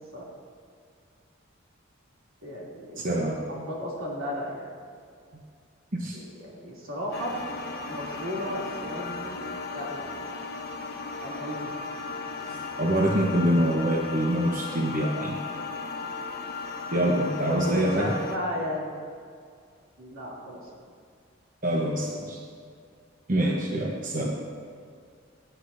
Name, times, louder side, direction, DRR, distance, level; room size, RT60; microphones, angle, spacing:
voice 1, 2.4-4.7 6.1-7.4 7.9-9.5 9.7-10.3 11.2-11.7 17.5-18.9 20.0-20.7, equal, 90° right, -4 dB, 2.9 m, -35 dB
voice 2, 3.0-3.4 5.9-6.2 12.4-15.4 16.9-18.2 21.6-22.4 23.3-24.4, right 1 dB, 40° right, -2 dB, 1.0 m, -25 dB
sound 1, 7.1-18.4, left 4 dB, 50° left, 1.0 m, -36 dB
17.0 x 10.0 x 2.7 m, 2.2 s
head